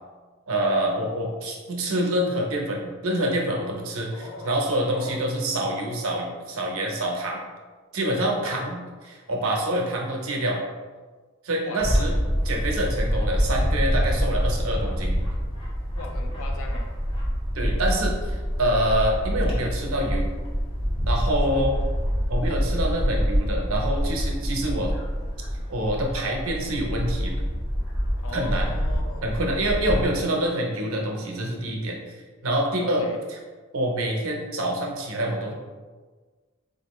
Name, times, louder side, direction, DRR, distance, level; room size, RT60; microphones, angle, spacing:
voice 1, 0.5-7.4 7.9-10.6 11.4-12.2 12.4-15.2 17.5-20.3 21.1-21.7 22.3-24.9 25.7-27.4 28.3-28.7 29.2-32.0 32.4-33.4 33.7-35.5, right 1 dB, 85° right, 0 dB, 0.8 m, -26 dB
voice 2, 4.1-4.6 4.9-5.2 8.3-8.6 11.5-11.9 15.9-16.9 21.5-21.6 28.2-29.5 32.8-33.3, left 2 dB, 85° left, 3 dB, 0.6 m, -38 dB
Bird / Wind, 11.8-30.1, equal, 25° left, 1.0 m, -26 dB
4.3 x 2.6 x 3.0 m, 1.4 s
head